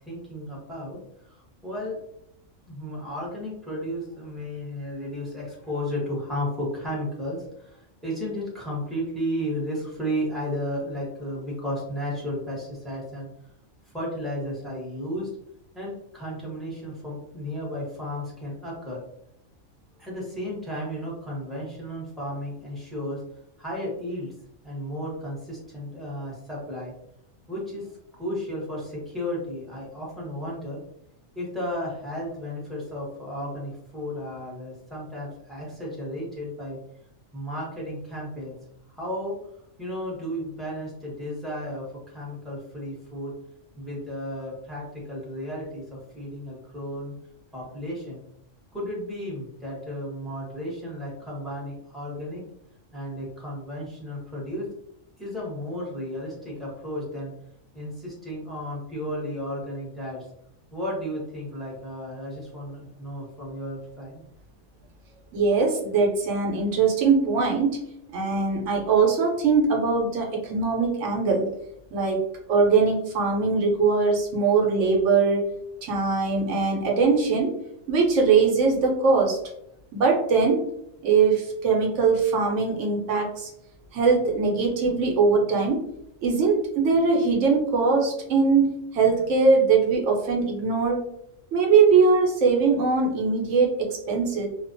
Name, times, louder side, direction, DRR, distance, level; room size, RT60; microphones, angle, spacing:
voice 1, 0.1-1.0 1.2-2.0 2.7-13.3 13.9-15.3 15.7-19.0 20.0-23.2 23.6-24.3 24.6-26.9 27.5-30.8 31.3-36.8 37.3-38.5 38.9-39.4 39.8-43.3 43.8-45.8 46.1-47.1 47.5-48.2 48.7-52.4 52.9-54.7 55.2-57.3 57.7-60.3 60.7-64.2, equal, ahead, -5 dB, 0.6 m, -33 dB
voice 2, 65.3-67.8 68.1-71.5 71.9-75.5 75.8-77.6 77.9-79.4 79.9-80.6 81.0-83.5 83.9-85.8 86.2-91.0 91.5-94.5, right 4 dB, 70° right, 0 dB, 0.9 m, -21 dB
2.4 x 2.1 x 2.5 m, 0.75 s
omnidirectional pair, 1.4 m